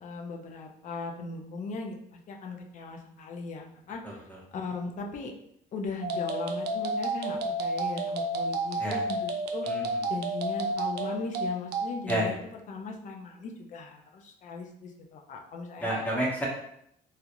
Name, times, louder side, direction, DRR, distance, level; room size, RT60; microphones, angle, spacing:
voice 1, 0.0-4.2 4.5-5.3 5.7-9.7 10.1-15.9, left 4 dB, 45° left, 2 dB, 0.5 m, -38 dB
voice 2, 4.0-4.4 8.8-9.0 9.6-9.8 12.1-12.3 15.8-16.5, right 1 dB, 10° left, -4 dB, 0.8 m, -30 dB
sound 1, 6.0-12.3, right 2 dB, 75° right, 0.4 m, -31 dB
2.4 x 2.0 x 2.8 m, 0.73 s
cardioid pair, 110°, 17 cm